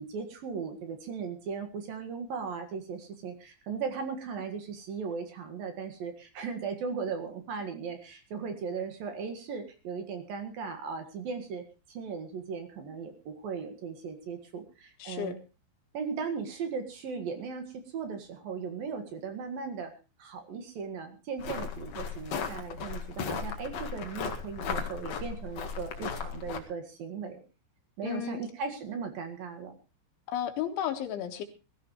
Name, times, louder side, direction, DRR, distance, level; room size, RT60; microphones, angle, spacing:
voice 1, 0.0-15.4 15.9-19.9 20.2-27.4 28.0-29.8, right 5 dB, 60° right, 6 dB, 3.2 m, -37 dB
voice 2, 15.0-15.3 28.0-28.4 30.3-31.4, left 10 dB, 80° left, 6 dB, 4.0 m, -33 dB
sound 1, 21.4-26.6, left 6 dB, 50° left, 2.2 m, -36 dB
21.0 x 15.0 x 3.1 m, 0.32 s
omnidirectional pair, 5.3 m